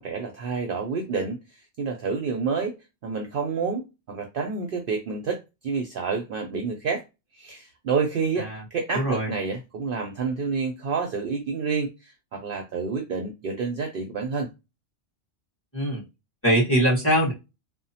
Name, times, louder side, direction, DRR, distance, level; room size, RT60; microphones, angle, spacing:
voice 1, 0.0-2.8 3.0-7.0 7.3-14.5, right 5 dB, 60° right, 0.6 m, -29 dB
voice 2, 8.9-9.3 15.7-16.0 16.4-17.3, equal, 10° left, 1.3 m, -22 dB
2.8 x 2.1 x 2.7 m
omnidirectional pair, 1.2 m